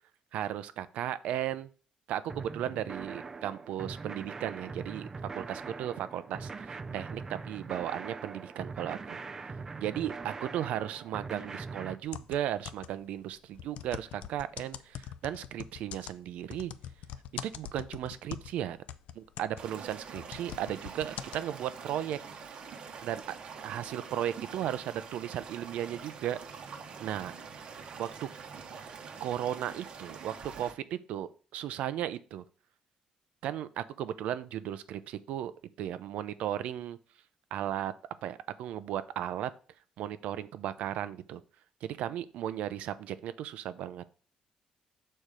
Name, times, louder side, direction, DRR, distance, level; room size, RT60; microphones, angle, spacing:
voice 1, 0.3-1.7 2.1-5.1 5.3-9.2 9.8-16.7 17.4-18.8 19.1-22.2 23.0-23.2 23.6-26.4 27.0-27.3 28.0-28.3 29.2-32.4 33.4-35.5 35.8-37.0 37.5-37.9 38.2-39.5 40.0-41.4 41.8-44.0, right 11 dB, 90° right, 14 dB, 0.6 m, -35 dB
sound 1, 2.3-12.0, right 4 dB, 25° right, 0.4 m, -42 dB
sound 2, 12.1-13.1 13.5-18.6 18.9-21.4, left 10 dB, 85° left, 0.5 m, -43 dB
sound 3, 19.6-30.7, right 6 dB, 50° right, 1.0 m, -45 dB
6.5 x 4.3 x 5.1 m, 0.39 s
cardioid pair, 155°, 2 cm